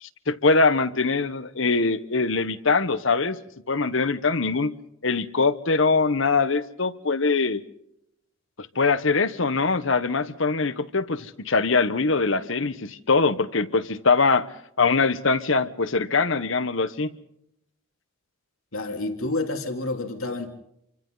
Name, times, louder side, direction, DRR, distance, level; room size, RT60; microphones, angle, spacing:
voice 1, 0.0-3.4 3.7-4.7 5.0-7.6 8.6-14.5 14.8-17.1, left 4 dB, 65° left, 13 dB, 1.2 m, -22 dB
voice 2, 18.7-20.5, left 2 dB, 90° left, 5 dB, 3.3 m, -29 dB
28.5 x 25.0 x 4.0 m, 0.78 s
head